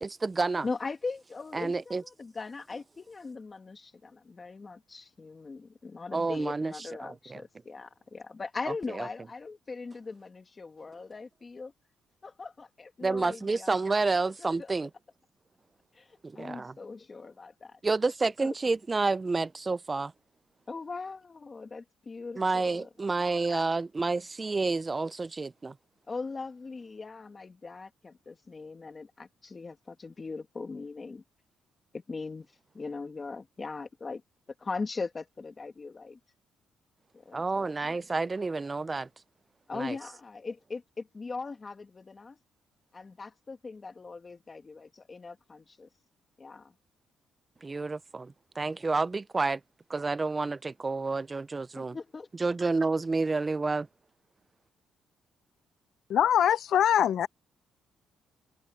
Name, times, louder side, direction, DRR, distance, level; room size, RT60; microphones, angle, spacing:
voice 1, 0.0-0.7 1.5-2.0 6.1-6.7 7.0-7.4 13.0-14.9 16.2-16.7 17.8-20.1 22.4-25.7 37.3-39.1 39.7-40.0 47.6-49.6 49.9-52.0 52.4-53.9, right 3 dB, 20° right, 0.4 m, -29 dB
voice 2, 0.6-11.7 12.2-13.7 14.4-14.7 15.9-17.8 18.2-18.5 20.7-22.9 26.1-31.2 31.9-32.5 32.7-34.2 34.6-36.2 37.1-38.0 39.7-42.4 42.9-45.9 46.4-46.7 51.8-52.3, left 4 dB, 25° left, 2.2 m, -40 dB
voice 3, 56.1-57.3, left 10 dB, 65° left, 0.7 m, -23 dB
cardioid pair, 125°, 0 cm